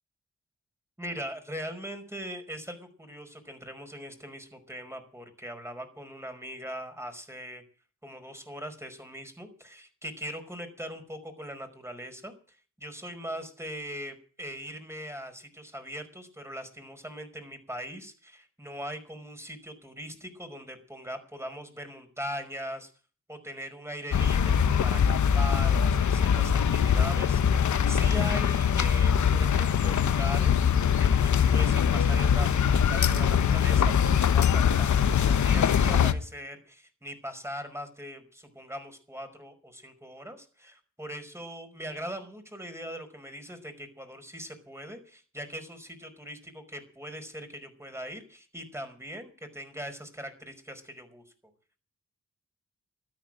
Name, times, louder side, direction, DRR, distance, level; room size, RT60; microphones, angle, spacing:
voice 1, 1.0-7.6 8.0-12.3 12.8-22.9 23.3-30.7 31.0-51.2, equal, 10° right, 7 dB, 5.1 m, -40 dB
sound 1, 24.1-36.1, left 8 dB, 75° left, 1.1 m, -23 dB
13.5 x 9.6 x 9.0 m, 0.41 s
cardioid pair, 50°, 30 cm